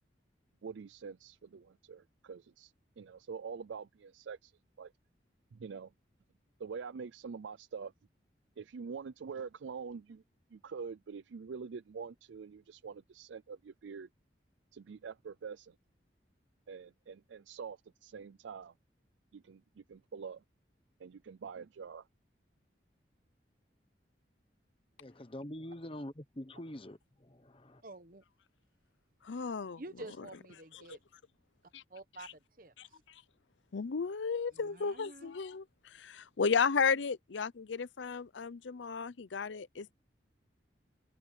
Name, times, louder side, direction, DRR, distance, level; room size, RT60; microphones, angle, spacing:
voice 1, 0.6-4.5 4.8-4.9 5.5-5.9 6.6-7.9 8.6-10.2 10.5-14.1 14.7-15.8 16.7-18.7 19.3-20.4 21.0-22.1, right 5 dB, 85° right, 0.4 m, -45 dB
voice 2, 25.0-27.8, left 1 dB, 30° left, 1.1 m, -45 dB
voice 3, 27.8-28.2 29.8-31.0 31.9-32.3 32.6-32.7 34.5-35.3, right 2 dB, 50° right, 1.0 m, -48 dB
voice 4, 29.2-29.8 30.7-30.8 33.7-35.6 35.9-39.9, left 5 dB, 85° left, 0.6 m, -33 dB
head